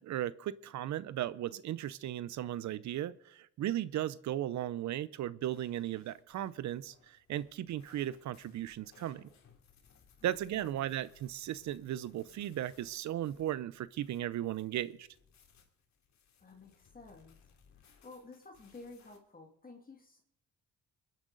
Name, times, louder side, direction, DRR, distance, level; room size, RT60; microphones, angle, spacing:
voice 1, 0.0-9.3 10.2-15.1, right 12 dB, 70° right, 18 dB, 0.6 m, -36 dB
sound 1, 5.4-19.2, left 6 dB, 65° left, 2.9 m, -65 dB
voice 2, 10.6-10.9 16.4-17.4 17.7-20.2, left 3 dB, 30° left, 2 dB, 2.2 m, -53 dB
23.5 x 10.5 x 3.9 m, 0.76 s
cardioid pair, 90°, 30 cm